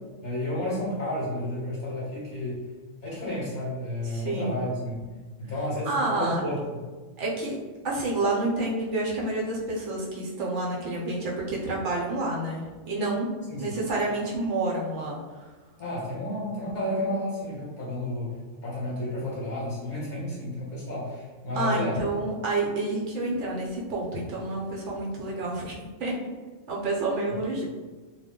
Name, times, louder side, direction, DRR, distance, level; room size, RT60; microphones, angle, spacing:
voice 1, 0.2-2.6 3.0-5.1 5.4-6.7 13.5-13.8 15.8-22.0, left 1 dB, 45° left, -7 dB, 0.8 m, -31 dB
voice 2, 4.1-4.6 5.9-6.4 7.2-7.6 7.8-13.3 13.6-15.2 21.6-26.2 26.7-27.7, right 2 dB, 70° right, -3 dB, 0.9 m, -29 dB
2.2 x 2.1 x 3.5 m, 1.3 s
omnidirectional pair, 1.3 m